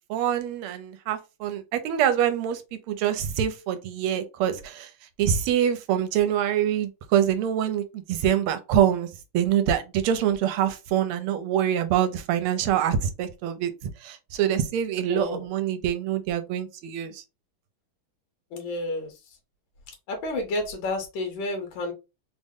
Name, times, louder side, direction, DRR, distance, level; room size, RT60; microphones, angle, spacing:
voice 1, 0.1-2.6 2.9-4.9 5.2-9.1 9.3-13.7 14.0-17.2, right 10 dB, 80° right, 1.5 m, -25 dB
voice 2, 15.1-15.5 18.5-19.1 20.1-21.9, left 2 dB, 65° left, 1.6 m, -30 dB
3.8 x 2.1 x 3.6 m
omnidirectional pair, 2.4 m